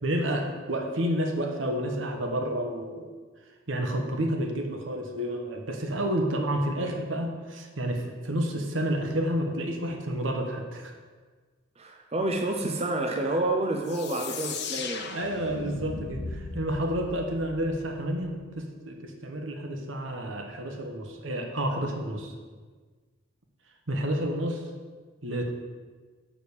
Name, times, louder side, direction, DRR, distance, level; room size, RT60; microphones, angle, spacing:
voice 1, 0.0-3.1 3.7-10.9 15.1-22.3 23.9-24.6 25.2-25.5, right 1 dB, 75° right, 2 dB, 1.2 m, -30 dB
voice 2, 11.8-15.1, right 2 dB, 30° right, 3 dB, 0.6 m, -29 dB
sound 1, 13.8-18.4, left 4 dB, 60° left, 0.7 m, -38 dB
6.8 x 5.1 x 6.6 m, 1.4 s
head